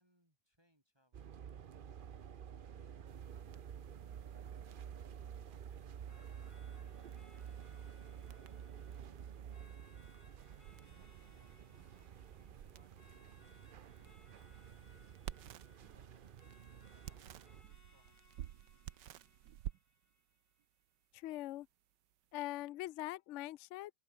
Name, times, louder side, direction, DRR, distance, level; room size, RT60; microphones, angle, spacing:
voice 1, 0.0-1.4 2.7-2.9 3.3-4.8 5.1-15.7 15.9-16.4 17.1-17.5 17.9-19.1, equal, 15° right, 5.2 m, -77 dB
sound 1, 1.1-17.6, right 8 dB, 65° right, 0.5 m, -51 dB
sound 2, 3.1-22.7, right 12 dB, 85° right, 1.5 m, -55 dB
sound 3, 6.1-21.1, left 2 dB, 60° left, 6.3 m, -69 dB
voice 2, 21.1-21.7 22.3-23.9, left 15 dB, 85° left, 0.6 m, -42 dB
open air
omnidirectional pair, 1.8 m